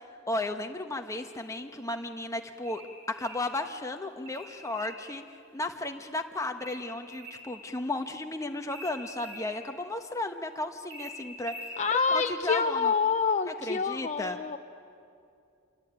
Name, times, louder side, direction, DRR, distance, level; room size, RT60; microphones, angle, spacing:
voice 1, 0.3-2.8 3.1-5.2 5.5-11.7 12.1-12.9 13.4-14.4, left 2 dB, 15° left, 5 dB, 1.2 m, -34 dB
sound 1, 2.6-3.5 4.3-5.0 6.6-7.5 8.7-9.5 10.9-11.8, right 1 dB, 60° right, 4.4 m, -44 dB
voice 2, 11.8-14.6, left 5 dB, 35° left, 7 dB, 0.6 m, -27 dB
27.5 x 23.0 x 9.0 m, 2.5 s
head